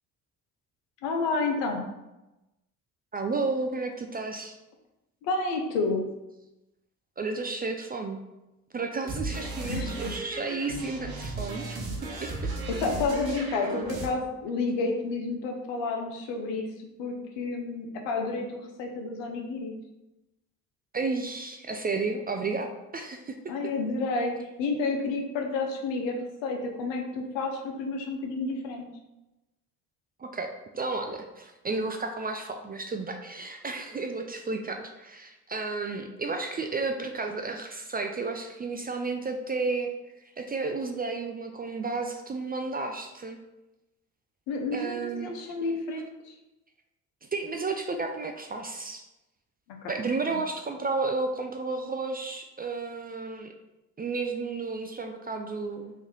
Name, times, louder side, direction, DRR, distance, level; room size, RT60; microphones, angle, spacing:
voice 1, 1.0-1.9 5.2-6.1 9.6-10.1 12.8-16.7 17.0-19.7 23.5-28.9 44.5-46.3 49.7-49.9 50.2-50.4, left 3 dB, 75° left, 2 dB, 0.8 m, -30 dB
voice 2, 3.1-4.5 7.2-8.2 8.7-12.3 20.9-23.5 30.2-39.9 40.4-43.4 44.7-45.5 47.3-49.0 49.9-53.5 54.0-55.9, right 3 dB, 25° right, 5 dB, 0.3 m, -32 dB
sound 1, 9.1-14.1, right 2 dB, 55° right, 0.9 m, -35 dB
3.1 x 2.7 x 3.6 m, 0.98 s
hypercardioid pair, 45°, 44 cm